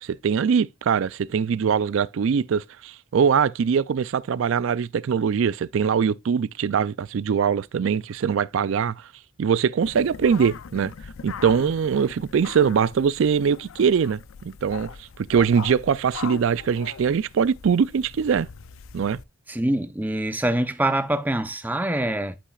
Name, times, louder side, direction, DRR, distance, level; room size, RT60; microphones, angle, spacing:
voice 1, 0.0-9.1 9.4-10.9 11.2-18.5 18.9-19.2, right 6 dB, 60° right, 0.3 m, -22 dB
sound 1, 9.8-19.2, left 6 dB, 70° left, 0.5 m, -40 dB
voice 2, 19.5-22.4, right 1 dB, 10° right, 0.6 m, -25 dB
11.5 x 5.7 x 2.4 m
head